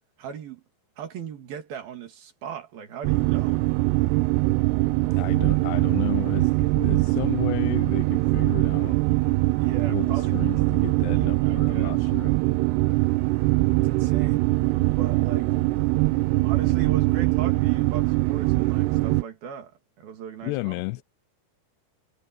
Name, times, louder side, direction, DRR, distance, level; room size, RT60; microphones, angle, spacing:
voice 1, 0.2-0.6 1.0-3.6 9.6-10.6 11.1-12.5 13.8-14.5 14.9-15.6 16.4-20.7, right 8 dB, 65° right, 3.9 m, -38 dB
sound 1, 3.0-19.2, right 21 dB, 85° right, 2.7 m, -22 dB
voice 2, 5.2-9.0 9.6-12.3 20.4-21.0, left 23 dB, 85° left, 2.7 m, -33 dB
omnidirectional pair, 4.8 m